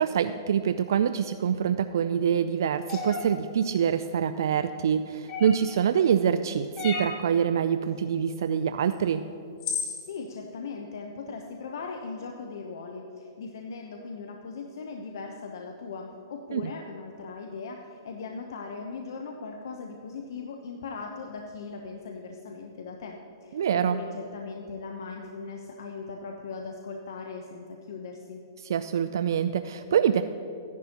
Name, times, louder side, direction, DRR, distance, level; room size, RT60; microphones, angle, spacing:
voice 1, 0.0-9.2 16.5-16.7 23.5-24.0 28.6-30.2, right 8 dB, 70° right, 10 dB, 0.3 m, -25 dB
sound 1, 2.9-3.2 5.3-5.7 6.8-7.2 8.9-9.0 9.6-10.0, left 5 dB, 35° left, 1.8 m, -32 dB
voice 2, 10.0-28.4, left 4 dB, 70° left, 2 dB, 0.8 m, -39 dB
14.5 x 10.5 x 2.9 m, 2.7 s
hypercardioid pair, 145°, 2 cm